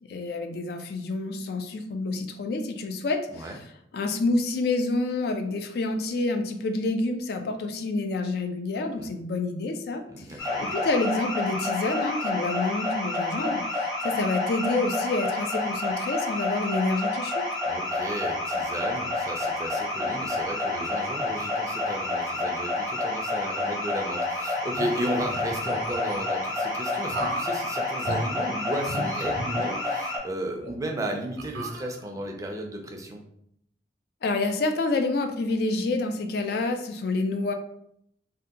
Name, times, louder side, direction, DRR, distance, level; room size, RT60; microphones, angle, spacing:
voice 1, 0.0-3.5 3.9-10.0 10.3-17.5 34.2-37.5, left 2 dB, 60° left, 6 dB, 0.3 m, -28 dB
voice 2, 10.1-10.7 17.7-33.2, right 1 dB, 20° right, 2 dB, 0.4 m, -34 dB
sound 1, 10.4-30.2, left 2 dB, 20° left, 0.8 m, -29 dB
sound 2, 24.7-26.2 27.1-27.5 28.0-28.2 28.8-30.1 30.6-30.7 31.4-32.3, right 1 dB, 85° right, 0.7 m, -35 dB
2.7 x 2.2 x 3.5 m, 0.72 s
head